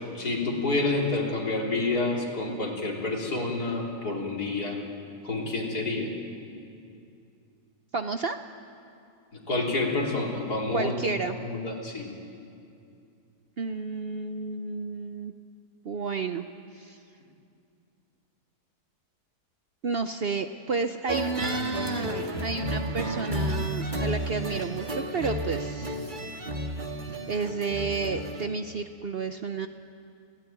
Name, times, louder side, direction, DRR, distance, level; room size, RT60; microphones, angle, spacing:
voice 1, 0.0-4.8 5.2-6.1 9.3-12.1, left 2 dB, 80° left, -2 dB, 4.3 m, -29 dB
voice 2, 7.9-8.4 10.7-11.4 13.6-15.4 15.8-16.5 16.8-17.0 19.8-26.2 27.3-29.7, right 4 dB, 50° right, 8 dB, 0.7 m, -31 dB
sound 1, 21.1-28.5, right 1 dB, 30° right, 1.9 m, -32 dB
27.5 x 17.0 x 9.2 m, 2.5 s
omnidirectional pair, 1.7 m